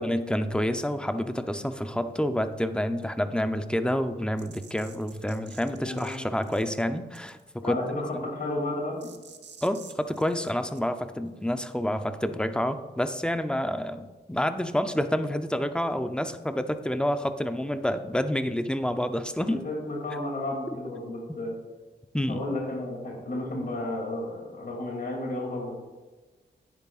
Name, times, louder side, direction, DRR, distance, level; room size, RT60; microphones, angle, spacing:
voice 1, 0.0-7.8 8.1-8.2 9.6-19.6 22.1-22.4, equal, 5° left, 9 dB, 0.6 m, -28 dB
sound 1, 4.4-6.2 6.4-6.8 7.1-7.5 9.0-10.8, right 6 dB, 70° right, 0.9 m, -50 dB
voice 2, 5.8-6.2 7.6-9.1 19.4-21.5 22.2-25.7, left 1 dB, 55° left, -2 dB, 2.7 m, -32 dB
11.0 x 9.5 x 2.4 m, 1.2 s
wide cardioid pair, 90°, 19 cm